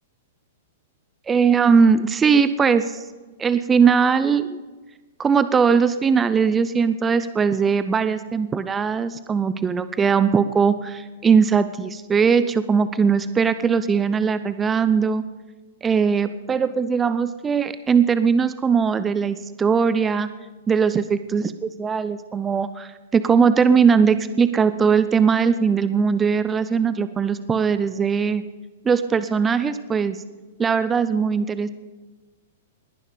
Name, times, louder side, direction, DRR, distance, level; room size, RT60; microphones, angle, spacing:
voice 1, 1.3-3.0 3.4-4.6 5.2-15.2 15.8-20.3 20.7-28.4 28.8-30.2 30.6-31.7, right 6 dB, 15° right, 13 dB, 0.6 m, -20 dB
20.0 x 10.5 x 5.1 m, 1.3 s
hypercardioid pair, 110°, 0 cm